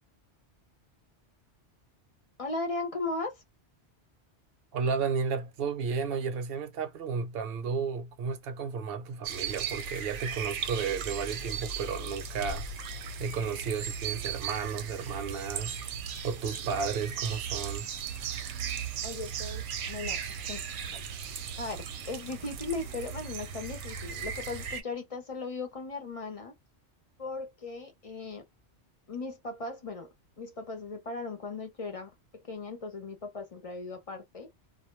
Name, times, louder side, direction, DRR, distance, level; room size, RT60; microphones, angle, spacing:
voice 1, 2.4-3.4 19.0-20.2 20.5-20.6 20.9-21.0 21.6-26.6 27.2-28.5 29.1-34.5, left 3 dB, 40° left, 0.6 m, -37 dB
voice 2, 4.7-12.7 13.2-15.8 16.2-17.9, right 5 dB, 60° right, 0.8 m, -33 dB
sound 1, 9.2-24.8, right 7 dB, 85° right, 0.9 m, -37 dB
Bass drum, 12.4-13.8, left 2 dB, 70° left, 0.8 m, -43 dB
2.2 x 2.1 x 3.0 m
omnidirectional pair, 1.2 m